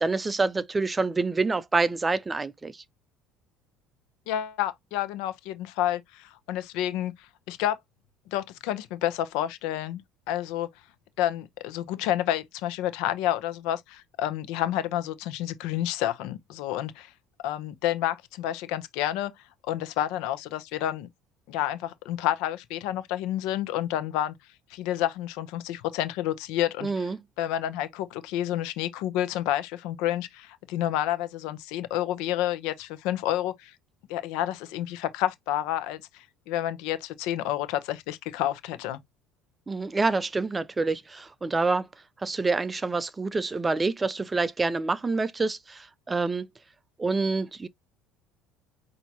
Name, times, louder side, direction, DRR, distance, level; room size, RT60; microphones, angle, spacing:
voice 1, 0.0-2.7 26.8-27.2 39.7-41.9 42.2-46.5 47.0-47.7, right 3 dB, 15° right, 0.4 m, -27 dB
voice 2, 4.3-7.1 7.5-7.8 8.3-10.0 10.3-10.7 11.2-17.1 17.4-19.3 19.7-21.1 21.5-24.3 24.7-27.1 27.4-33.7 34.1-39.0, left 12 dB, 75° left, 0.8 m, -29 dB
5.8 x 2.7 x 2.8 m
cardioid pair, 115°, 0 cm